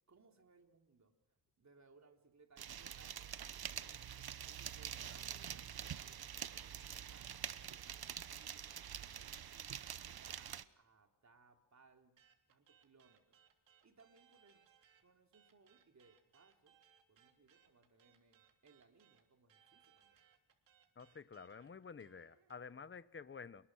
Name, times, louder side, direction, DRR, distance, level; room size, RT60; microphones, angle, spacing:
voice 1, 0.1-1.2 1.6-4.1 4.4-7.3 7.5-8.7 9.0-12.2 12.5-13.4 13.8-14.6 15.0-16.8 17.1-20.2, right 4 dB, 40° right, 3.5 m, -67 dB
sound 1, 2.6-10.6, right 9 dB, 55° right, 1.0 m, -46 dB
sound 2, 12.2-15.0 15.3-22.7, right 9 dB, 85° right, 3.3 m, -70 dB
voice 2, 21.0-23.7, left 5 dB, 25° left, 0.9 m, -51 dB
28.0 x 20.0 x 6.3 m
cardioid pair, 95°, 44 cm